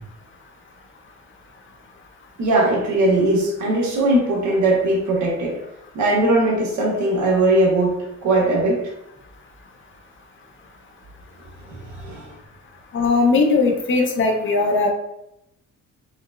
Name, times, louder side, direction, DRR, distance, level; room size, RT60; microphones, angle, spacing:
voice 1, 2.4-5.6 5.9-8.8 11.7-12.2, right 2 dB, 70° right, -2 dB, 1.1 m, -19 dB
voice 2, 12.9-14.9, left 3 dB, 40° left, 2 dB, 0.6 m, -18 dB
3.8 x 2.0 x 2.3 m, 0.82 s
cardioid pair, 90°, 30 cm